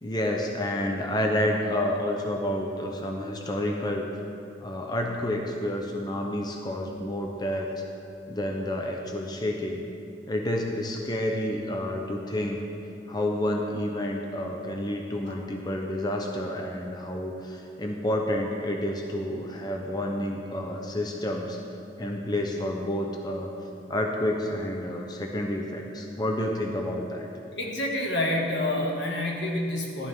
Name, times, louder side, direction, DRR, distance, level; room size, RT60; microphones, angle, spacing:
voice 1, 0.0-4.1 4.6-7.7 8.3-9.8 10.3-12.6 13.1-21.6 22.0-23.5 23.9-27.3, left 1 dB, 25° left, 1 dB, 0.8 m, -29 dB
voice 2, 27.6-30.1, left 1 dB, 80° left, -1 dB, 2.0 m, -28 dB
14.5 x 11.5 x 3.6 m, 2.6 s
head